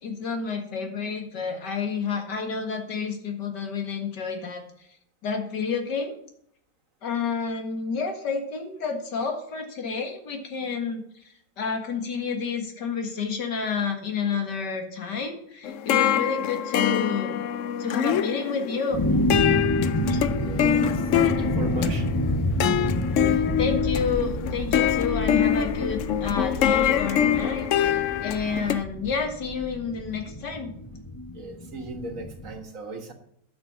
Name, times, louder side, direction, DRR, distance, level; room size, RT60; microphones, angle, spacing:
voice 1, 0.0-4.6 5.2-6.1 7.0-11.0 11.6-17.4 17.8-19.0 20.1-20.2 23.6-30.7, left 5 dB, 90° left, 4 dB, 2.4 m, -30 dB
sound 1, 15.6-28.8, left 9 dB, 65° left, 0.7 m, -25 dB
sound 2, 18.9-32.6, left 1 dB, 20° left, 0.6 m, -29 dB
voice 2, 20.4-20.9 21.2-22.1 31.3-33.1, right 2 dB, 50° right, 5 dB, 1.8 m, -36 dB
11.5 x 6.2 x 7.1 m, 0.70 s
omnidirectional pair, 1.8 m